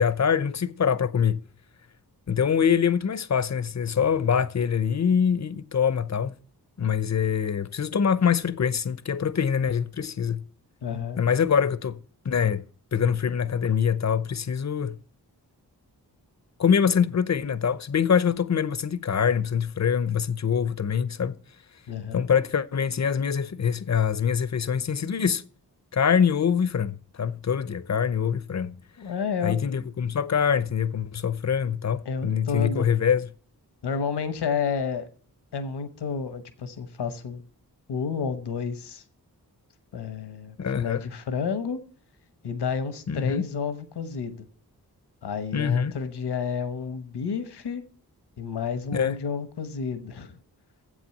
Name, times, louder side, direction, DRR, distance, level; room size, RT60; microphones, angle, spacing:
voice 1, 0.0-1.4 2.3-6.4 6.8-10.4 11.2-12.0 12.2-12.6 12.9-15.0 16.6-21.4 22.1-25.4 25.9-28.8 29.4-33.3 40.6-41.0 43.1-43.4 45.5-45.9 48.9-49.2, left 7 dB, 45° left, 0.7 m, -24 dB
voice 2, 10.8-11.2 21.9-22.3 29.0-29.6 32.0-32.9 33.8-35.1 35.5-37.4 37.9-39.0 39.9-41.8 42.4-44.4 45.2-47.8 48.4-50.4, left 6 dB, 80° left, 1.1 m, -30 dB
7.7 x 6.3 x 7.7 m
cardioid pair, 45°, 40 cm